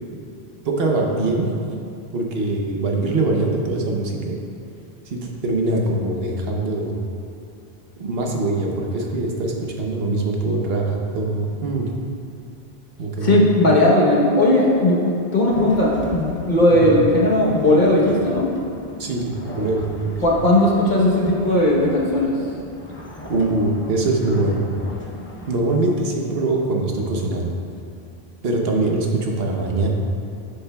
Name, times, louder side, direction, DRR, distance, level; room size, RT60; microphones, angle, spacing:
voice 1, 0.6-1.5 2.1-4.3 5.1-6.9 8.0-11.9 13.0-13.4 16.7-16.9 19.0-20.2 23.3-24.6 25.5-27.5 28.4-29.9, right 2 dB, 70° right, 0 dB, 1.1 m, -23 dB
voice 2, 13.2-18.5 20.2-22.4, left 1 dB, 50° left, -4 dB, 1.1 m, -17 dB
sound 1, 15.5-25.6, left 1 dB, 15° left, 0.6 m, -36 dB
10.0 x 6.8 x 2.3 m, 2.6 s
omnidirectional pair, 1.0 m